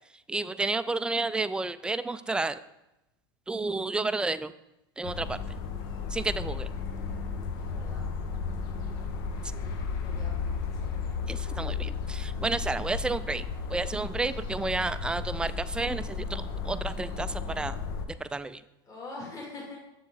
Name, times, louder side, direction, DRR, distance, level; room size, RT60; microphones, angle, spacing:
voice 1, 0.3-2.6 3.5-4.5 5.0-5.4 6.1-6.7 11.3-13.4 13.7-17.8 18.2-18.6, right 3 dB, 5° right, 12 dB, 0.3 m, -31 dB
sound 1, 5.0-18.1, left 5 dB, 65° left, 1.0 m, -34 dB
voice 2, 7.6-8.1 9.4-9.8 10.0-11.0 18.8-19.8, left 2 dB, 30° left, -3 dB, 2.7 m, -44 dB
7.2 x 6.8 x 4.0 m, 0.91 s
hypercardioid pair, 100°, 13 cm